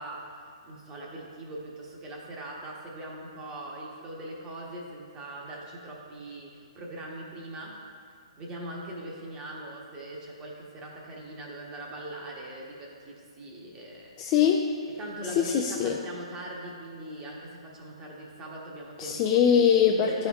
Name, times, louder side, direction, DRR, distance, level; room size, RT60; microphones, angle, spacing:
voice 1, 0.0-7.8 8.4-14.1 15.0-19.4 19.9-20.3, right 1 dB, 20° right, -2 dB, 0.9 m, -41 dB
voice 2, 14.2-14.7 15.4-16.0 19.0-20.3, left 8 dB, 30° left, 1 dB, 0.3 m, -22 dB
11.0 x 4.3 x 2.3 m, 2.2 s
hypercardioid pair, 135°, 3 cm